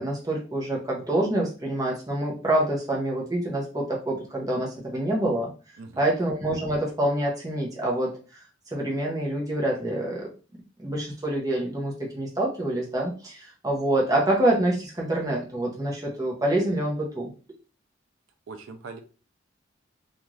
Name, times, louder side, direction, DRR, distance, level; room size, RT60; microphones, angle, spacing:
voice 1, 0.0-5.5 6.0-8.1 8.7-17.3, right 1 dB, 20° right, -2 dB, 0.7 m, -26 dB
voice 2, 5.8-6.1 18.5-19.0, right 4 dB, 75° right, 6 dB, 0.4 m, -41 dB
2.5 x 2.4 x 3.1 m, 0.36 s
head